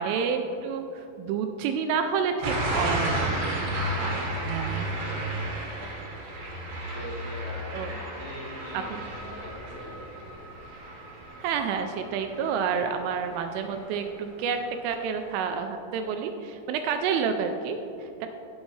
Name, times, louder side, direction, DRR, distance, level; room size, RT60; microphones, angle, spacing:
voice 1, 0.0-3.3 4.4-4.9 7.7-7.9 8.9-9.0 11.4-18.3, right 6 dB, 85° right, 6 dB, 2.9 m, -29 dB
sound 1, 2.4-13.3 13.7-14.1, right 1 dB, 65° right, 2.6 m, -32 dB
voice 2, 2.8-8.9 9.2-10.2, left 1 dB, 70° left, -3 dB, 2.9 m, -44 dB
sound 2, 8.2-15.7, right 1 dB, 85° left, 1.5 m, -50 dB
15.5 x 6.3 x 3.2 m, 2.8 s
omnidirectional pair, 5.9 m